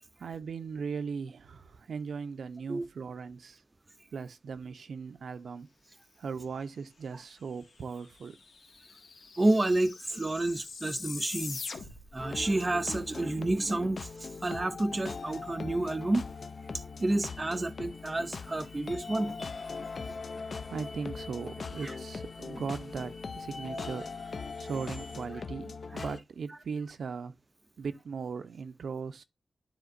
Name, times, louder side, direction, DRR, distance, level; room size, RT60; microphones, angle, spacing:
voice 1, 0.2-3.6 4.1-5.7 6.2-8.4 20.1-20.2 20.7-27.4 27.8-29.2, right 5 dB, 75° right, 0.6 m, -38 dB
sound 1, 7.7-7.8 8.0-12.2, left 4 dB, 80° left, 1.4 m, -43 dB
voice 2, 9.4-11.6 12.1-16.3 17.0-19.4 21.8-21.9 25.9-26.0, right 2 dB, 20° right, 0.5 m, -30 dB
sound 2, 12.2-26.2, left 4 dB, 50° left, 0.4 m, -41 dB
sound 3, 15.9-25.3, left 1 dB, 30° left, 1.7 m, -51 dB
12.5 x 4.3 x 2.5 m
wide cardioid pair, 155°, 0 cm